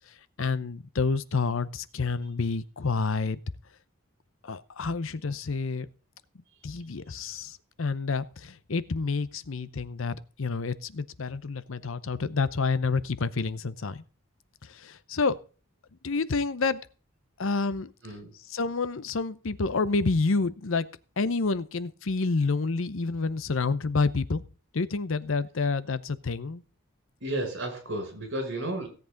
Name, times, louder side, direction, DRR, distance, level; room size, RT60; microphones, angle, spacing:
voice 1, 0.4-3.4 4.4-5.9 6.6-14.0 14.6-15.4 16.0-16.8 17.4-17.9 18.5-20.9 21.2-24.4 24.7-26.6, left 4 dB, 65° left, 0.7 m, -28 dB
voice 2, 18.0-18.3 27.2-28.9, right 1 dB, 55° right, 6.1 m, -32 dB
17.0 x 8.0 x 3.9 m
head